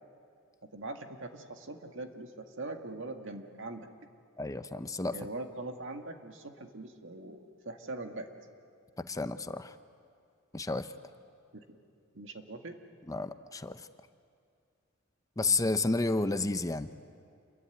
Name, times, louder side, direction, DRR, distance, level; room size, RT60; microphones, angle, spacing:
voice 1, 0.7-3.9 5.1-8.3 11.5-11.6 12.1-12.8 15.4-15.6, right 2 dB, 65° right, 5 dB, 2.0 m, -42 dB
voice 2, 4.4-5.1 9.0-9.7 10.5-10.9 13.1-13.8 15.4-16.9, left 3 dB, 15° left, 10 dB, 0.7 m, -31 dB
28.5 x 22.0 x 9.4 m, 2.4 s
head